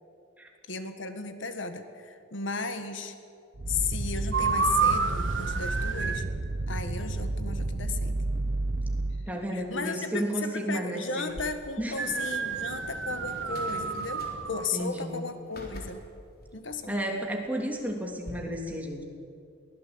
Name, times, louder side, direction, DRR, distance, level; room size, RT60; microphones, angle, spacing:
voice 1, 0.7-3.2 3.7-6.3 6.7-8.2 9.5-16.0 16.5-16.9, left 4 dB, 75° left, 8 dB, 1.7 m, -35 dB
sound 1, 3.5-9.3, right 2 dB, 55° right, 0.8 m, -31 dB
sound 2, 4.3-6.3 12.0-14.7, right 5 dB, 75° right, 1.6 m, -29 dB
voice 2, 9.3-11.4 11.8-12.2 14.7-15.1 16.9-19.0, right 1 dB, 10° right, 1 dB, 3.1 m, -32 dB
sound 3, 11.3-18.3, left 1 dB, 50° left, 3.7 m, -48 dB
23.0 x 18.0 x 8.8 m, 2.5 s
head